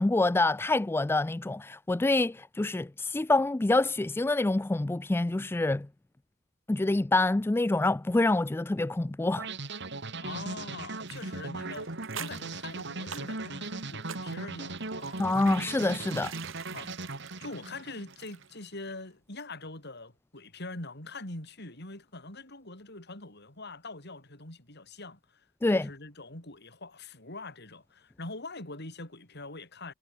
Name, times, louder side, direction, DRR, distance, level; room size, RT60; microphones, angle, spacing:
voice 1, 0.0-5.9 6.7-9.5 15.2-16.3 25.6-25.9, left 2 dB, 10° left, 0.3 m, -26 dB
sound 1, 9.4-18.4, right 3 dB, 60° right, 3.6 m, -38 dB
voice 2, 10.2-15.2 16.7-17.0 17.4-29.9, left 2 dB, 55° left, 6.3 m, -43 dB
sound 2, 11.0-18.6 18.9-19.0, right 8 dB, 80° right, 3.7 m, -47 dB
head